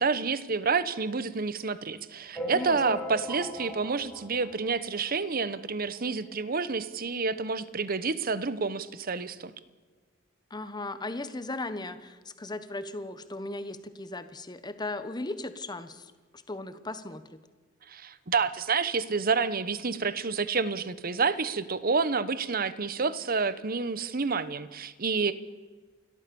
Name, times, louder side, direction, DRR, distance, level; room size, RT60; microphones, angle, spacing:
voice 1, 0.0-9.5 17.9-25.3, right 4 dB, 50° right, 15 dB, 1.0 m, -29 dB
sound 1, 2.3-5.2 5.7-5.8 6.0-6.1 6.4-6.5 7.4-7.5 7.9-8.0, equal, ahead, 4.2 m, -39 dB
voice 2, 2.5-3.0 10.5-16.1 16.5-17.4, left 2 dB, 20° left, 11 dB, 1.2 m, -37 dB
29.0 x 13.0 x 7.0 m, 1.4 s
head